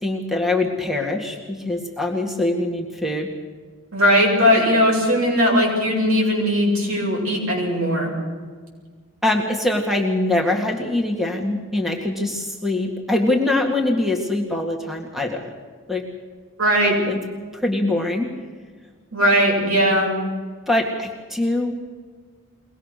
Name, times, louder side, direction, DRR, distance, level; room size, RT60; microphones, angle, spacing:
voice 1, 0.0-3.3 9.2-15.5 15.9-16.1 17.1-17.2 17.5-18.3 20.7-21.7, left 2 dB, ahead, 1 dB, 1.9 m, -23 dB
voice 2, 3.9-8.1 16.6-17.0 19.1-20.2, equal, 70° right, -2 dB, 7.8 m, -18 dB
23.5 x 19.5 x 6.6 m, 1.5 s
head